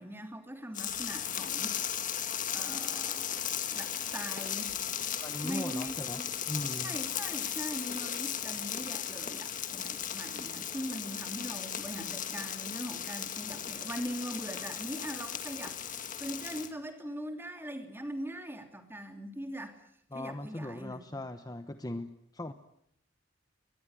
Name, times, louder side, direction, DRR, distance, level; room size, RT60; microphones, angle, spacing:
voice 1, 0.0-1.8 2.5-4.8 5.4-6.3 6.8-15.8 16.2-19.8 20.1-21.2, equal, 10° right, 6 dB, 3.0 m, -41 dB
sound 1, 0.7-16.7, left 9 dB, 40° left, 1.8 m, -36 dB
voice 2, 5.2-6.2 6.5-7.0 20.1-22.5, left 1 dB, 20° left, 9 dB, 1.0 m, -39 dB
23.0 x 21.0 x 9.1 m, 0.74 s
head